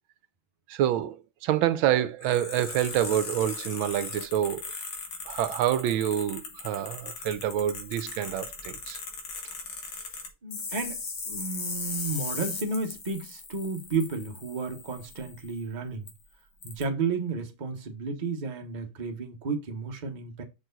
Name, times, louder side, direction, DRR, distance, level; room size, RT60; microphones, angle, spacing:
voice 1, 0.7-1.2 1.4-4.6 5.3-9.0, right 11 dB, 80° right, 1.4 m, -27 dB
sound 1, 2.2-15.6 16.1-16.2 16.6-16.8, left 4 dB, 85° left, 2.4 m, -38 dB
voice 2, 10.4-16.1 16.6-20.4, right 4 dB, 30° right, 0.9 m, -32 dB
6.1 x 4.5 x 3.8 m
omnidirectional pair, 2.2 m